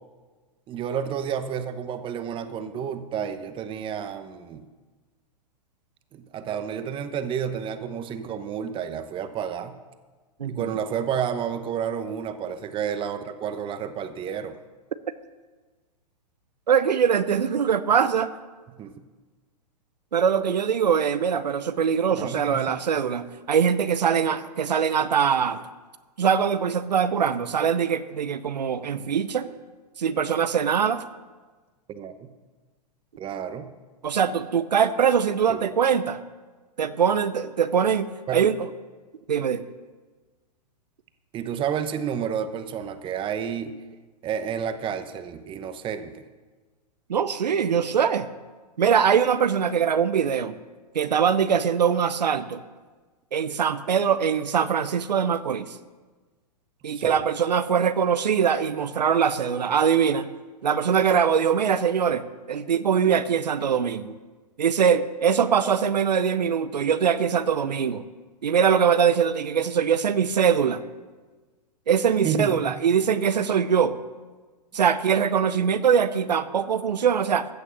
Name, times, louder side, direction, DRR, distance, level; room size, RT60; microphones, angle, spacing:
voice 1, 0.7-4.6 6.1-9.8 10.4-14.6 18.8-18.9 22.1-22.8 31.9-32.3 33.2-33.7 35.5-35.7 38.3-38.4 41.3-43.8 44.2-46.2 56.9-57.2 72.2-72.7, right 8 dB, 25° right, 10 dB, 1.0 m, -30 dB
voice 2, 10.4-10.7 16.7-18.3 20.1-25.6 26.2-29.5 30.0-31.0 34.0-36.2 36.8-38.7 39.3-39.6 47.1-48.3 48.8-50.5 50.9-52.6 53.3-55.8 56.8-60.3 60.6-64.2 64.6-68.0 68.4-70.8 71.9-74.0 74.7-77.5, right 7 dB, 85° right, 13 dB, 0.7 m, -22 dB
15.0 x 6.6 x 7.2 m, 1.3 s
hypercardioid pair, 120°, 21 cm